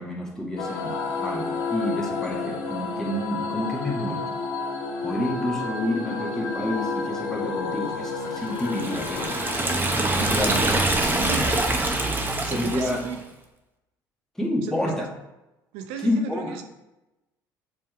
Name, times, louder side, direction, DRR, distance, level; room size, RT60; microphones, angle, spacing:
voice 1, 0.0-4.4 5.0-9.3 10.0-11.5 12.5-13.0 14.3-15.1 16.0-16.6, left 1 dB, 5° left, -2 dB, 1.7 m, -29 dB
sound 1, 0.6-11.5, left 4 dB, 70° left, 1.0 m, -31 dB
Liquid, 8.5-13.2, right 2 dB, 20° right, 0.9 m, -25 dB
voice 2, 11.2-11.8 12.2-13.2 14.6-15.1 15.7-16.6, right 8 dB, 70° right, 6 dB, 0.6 m, -36 dB
7.0 x 3.3 x 4.6 m, 0.97 s
hypercardioid pair, 60°, 10 cm